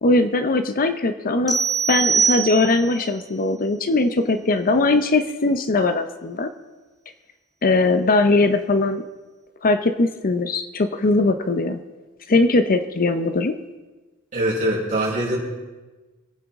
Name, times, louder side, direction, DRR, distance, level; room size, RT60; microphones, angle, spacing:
voice 1, 0.0-1.6 1.9-6.5 7.6-9.0 9.6-11.8 12.3-13.5, left 2 dB, 40° left, 9 dB, 0.7 m, -20 dB
sound 1, 1.5-3.0, right 6 dB, ahead, 2.2 m, -22 dB
voice 2, 14.3-15.4, right 1 dB, 35° right, -5 dB, 4.7 m, -22 dB
25.0 x 9.1 x 3.6 m, 1.2 s
head